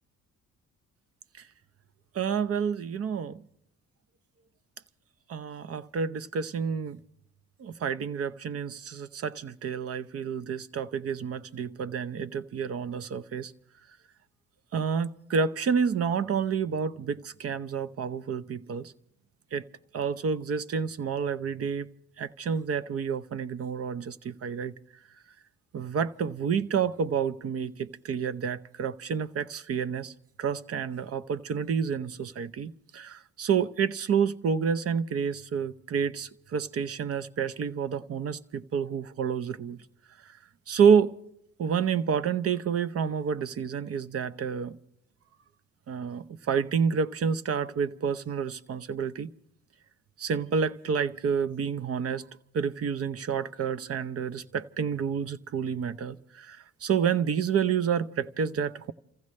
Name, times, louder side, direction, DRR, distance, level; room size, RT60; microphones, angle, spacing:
voice 1, 2.1-3.4 5.3-7.0 7.6-13.5 14.7-18.9 19.5-19.6 19.9-21.9 22.2-24.7 25.7-30.1 30.4-39.8 40.7-41.1 41.6-44.8 45.9-49.3 50.2-52.2 52.5-58.9, right 6 dB, 50° right, 0.8 m, -29 dB
29.0 x 15.5 x 3.2 m
cardioid pair, 90°, 30 cm